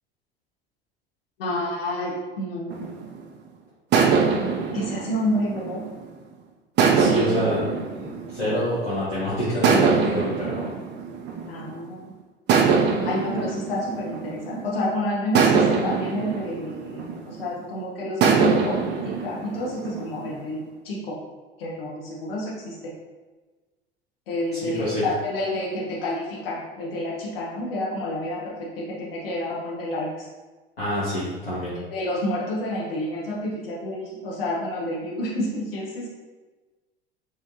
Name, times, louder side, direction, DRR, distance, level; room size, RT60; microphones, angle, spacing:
voice 1, 1.4-2.9 4.7-5.8 11.5-12.1 13.0-21.2 21.6-22.8 24.3-30.3 31.9-36.1, left 1 dB, 70° left, -4 dB, 1.3 m, -29 dB
sound 1, 2.7-3.3 3.9-6.2 6.8-8.9 9.6-11.9 12.5-14.7 15.3-17.6 18.2-20.5, right 5 dB, 35° right, 0.6 m, -23 dB
voice 2, 6.9-7.7 8.0-10.7 24.5-25.0 30.8-31.8, equal, 90° left, -11 dB, 1.2 m, -26 dB
4.7 x 3.2 x 2.8 m, 1.3 s
figure-of-eight pair, 75°, 29 cm